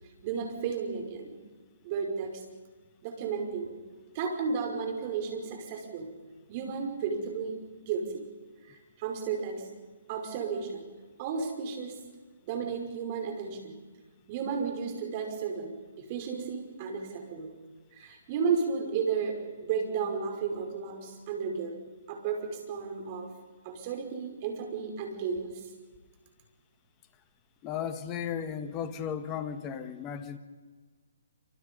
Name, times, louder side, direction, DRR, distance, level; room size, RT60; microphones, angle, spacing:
voice 1, 0.2-1.4 1.8-2.4 3.0-3.8 4.1-6.1 6.5-7.6 7.9-8.2 8.6-9.7 10.1-10.9 11.2-12.0 12.4-13.8 14.3-17.5 17.9-21.8 22.1-23.4 23.6-25.7, right 5 dB, 35° right, 4 dB, 5.5 m, -33 dB
voice 2, 27.6-30.4, left 8 dB, 25° left, 10 dB, 1.6 m, -35 dB
27.0 x 26.5 x 5.5 m, 1.4 s
figure-of-eight pair, 140°, 0 cm